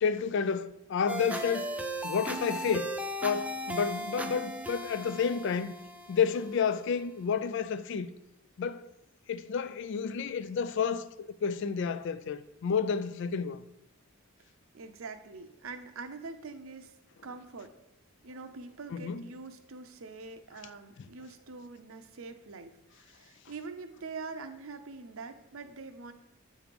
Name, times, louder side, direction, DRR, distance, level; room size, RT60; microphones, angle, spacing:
voice 1, 0.0-1.7 2.0-2.9 3.2-5.7 6.1-8.1 8.6-8.9 9.3-13.6 18.9-19.2, left 6 dB, 60° left, 0.4 m, -30 dB
sound 1, 1.1-7.1, right 1 dB, 5° right, 0.4 m, -37 dB
voice 2, 14.7-16.9 17.2-17.7 18.2-26.1, right 4 dB, 75° right, 0.7 m, -44 dB
8.6 x 3.2 x 5.1 m
head